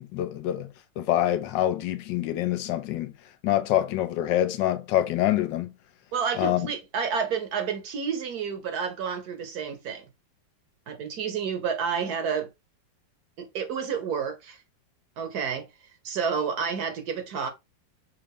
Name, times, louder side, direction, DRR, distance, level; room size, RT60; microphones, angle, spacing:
voice 1, 0.0-3.1 3.4-5.7 6.3-6.7, left 13 dB, 80° left, 1.3 m, -26 dB
voice 2, 6.1-10.0 10.9-12.5 13.4-14.6 15.2-15.7 16.0-17.5, right 6 dB, 65° right, 1.2 m, -30 dB
5.6 x 2.5 x 3.4 m
omnidirectional pair, 2.0 m